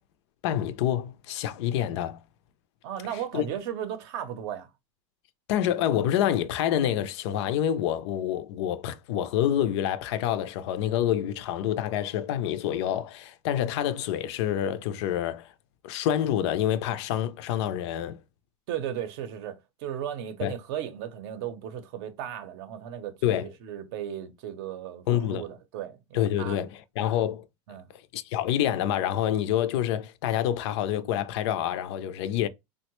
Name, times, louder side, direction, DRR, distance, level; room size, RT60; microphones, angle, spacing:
voice 1, 0.4-2.2 3.3-3.5 5.5-15.5 15.8-18.2 20.4-20.5 23.2-23.5 25.1-25.4 26.1-27.5 28.1-32.5, left 11 dB, 60° left, 0.4 m, -27 dB
voice 2, 2.8-4.7 5.7-5.8 18.7-26.6 27.7-27.9, right 10 dB, 55° right, 0.6 m, -36 dB
3.5 x 2.1 x 3.0 m
supercardioid pair, 155°, 16 cm